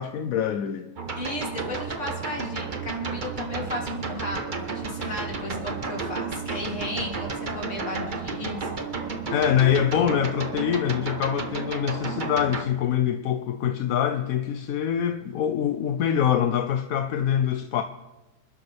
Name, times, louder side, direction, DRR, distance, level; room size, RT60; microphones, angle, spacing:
voice 1, 0.0-0.9 9.3-17.8, left 9 dB, 65° left, 1.0 m, -24 dB
sound 1, 1.0-12.6, right 4 dB, 35° right, 1.1 m, -32 dB
voice 2, 1.1-9.1, left 1 dB, 45° left, 3.4 m, -35 dB
27.5 x 12.0 x 3.4 m
omnidirectional pair, 1.7 m